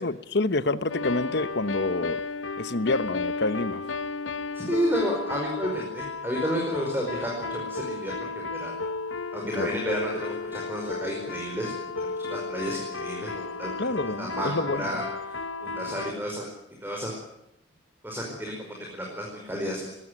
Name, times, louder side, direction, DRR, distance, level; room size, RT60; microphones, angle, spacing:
voice 1, 0.0-2.2 2.6-3.8 9.5-9.8 13.8-14.9, left 2 dB, 60° left, 1.1 m, -27 dB
sound 1, 0.9-16.1, left 4 dB, 85° left, 1.1 m, -33 dB
voice 2, 4.5-8.8 9.3-13.8 14.2-16.5 16.8-17.1 18.0-19.9, equal, 10° right, 5.1 m, -32 dB
19.5 x 18.5 x 10.0 m
head